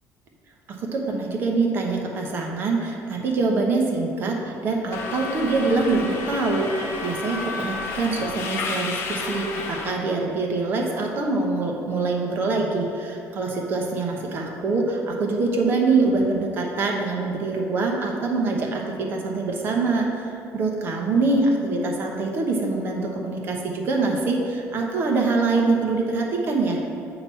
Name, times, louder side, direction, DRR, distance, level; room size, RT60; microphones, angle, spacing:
voice 1, 0.7-26.8, right 3 dB, 40° right, 0 dB, 1.0 m, -24 dB
Subway metro underground, 4.9-9.9, left 4 dB, 45° left, 0.7 m, -31 dB
8.6 x 3.0 x 5.5 m, 2.7 s
cardioid pair, 160°, 6 cm